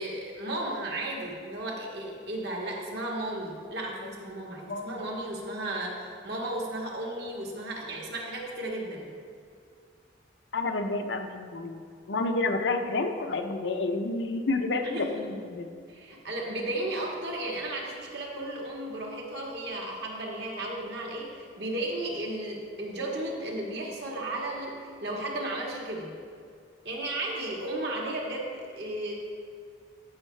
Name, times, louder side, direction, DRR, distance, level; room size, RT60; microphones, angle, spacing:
voice 1, 0.0-9.1 14.8-15.3 15.9-26.1 26.8-29.2, right 1 dB, 65° right, -2 dB, 1.6 m, -34 dB
voice 2, 4.7-5.0 10.5-11.8 12.1-15.8, left 3 dB, 75° left, 6 dB, 0.7 m, -30 dB
14.0 x 5.5 x 3.3 m, 2.2 s
head